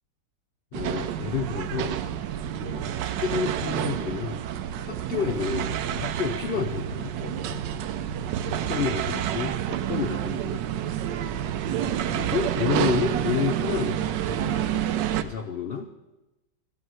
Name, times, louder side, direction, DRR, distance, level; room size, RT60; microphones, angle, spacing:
voice 1, 0.7-2.0 2.6-4.4 4.8-7.7 8.1-8.2 8.5-10.6 12.1-16.0, left 6 dB, 80° left, 6 dB, 0.5 m, -30 dB
sound 1, 0.7-15.2, right 10 dB, 85° right, 1.3 m, -29 dB
14.0 x 5.6 x 7.6 m, 1.0 s
omnidirectional pair, 1.9 m